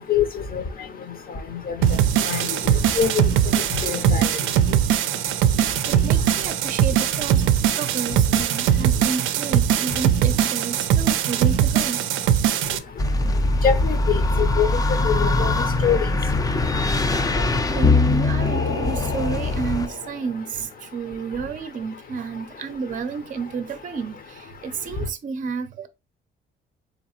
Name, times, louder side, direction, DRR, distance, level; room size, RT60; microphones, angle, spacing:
sound 1, 1.8-12.8, right 10 dB, 90° right, 0.4 m, -20 dB
voice 1, 3.8-4.2 13.6-15.5 15.8-16.0, left 7 dB, 45° left, 0.7 m, -23 dB
voice 2, 5.9-7.5 7.7-12.0 17.7-25.9, right 5 dB, 40° right, 0.5 m, -31 dB
sound 2, 13.0-19.9, left 2 dB, 20° left, 0.4 m, -22 dB
Singing, 18.4-20.4, left 3 dB, 75° left, 1.5 m, -32 dB
3.9 x 2.9 x 2.8 m
cardioid pair, 90°, 20 cm